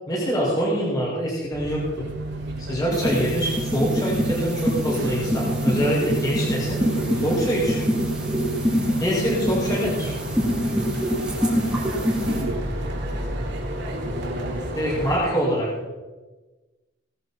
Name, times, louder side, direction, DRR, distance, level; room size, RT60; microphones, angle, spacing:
voice 1, 0.1-2.1 2.6-6.8 7.2-7.9 9.0-10.1 14.8-15.7, equal, 20° left, -7 dB, 6.6 m, -24 dB
sound 1, 1.5-15.2, right 1 dB, 55° right, 3.0 m, -31 dB
sound 2, 2.9-12.4, equal, 5° right, 3.2 m, -25 dB
voice 2, 5.0-5.5 6.5-7.1 11.7-12.6 13.9-15.1, right 1 dB, 75° right, 2 dB, 2.8 m, -36 dB
19.0 x 13.5 x 4.5 m, 1.2 s
head